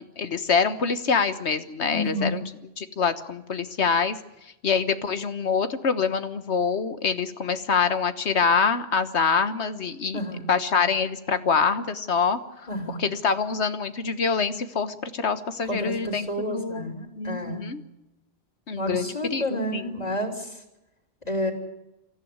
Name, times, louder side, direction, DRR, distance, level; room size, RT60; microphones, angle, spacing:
voice 1, 0.0-2.4 2.8-4.2 4.4-10.2 10.5-17.8 18.7-19.9, left 5 dB, 90° left, 11 dB, 1.6 m, -25 dB
voice 2, 1.9-2.4 10.1-10.5 12.7-13.0 15.7-17.7 18.7-20.6 21.2-21.5, left 1 dB, 40° left, 4 dB, 3.8 m, -30 dB
24.0 x 15.0 x 9.6 m, 0.90 s
omnidirectional pair, 1.1 m